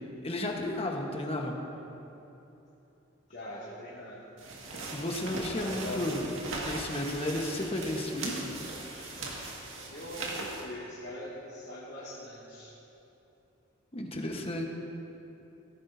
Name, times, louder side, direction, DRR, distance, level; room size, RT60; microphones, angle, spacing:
voice 1, 0.2-1.6 4.9-6.3 6.6-8.5 8.9-9.1 13.9-14.6, left 1 dB, 30° left, 1 dB, 1.2 m, -33 dB
voice 2, 3.3-4.2 5.5-6.1 9.9-12.8, left 1 dB, 60° left, -9 dB, 2.3 m, -42 dB
sound 1, 4.4-10.6, right 2 dB, 75° right, 1.9 m, -39 dB
17.0 x 14.0 x 2.7 m, 2.9 s
head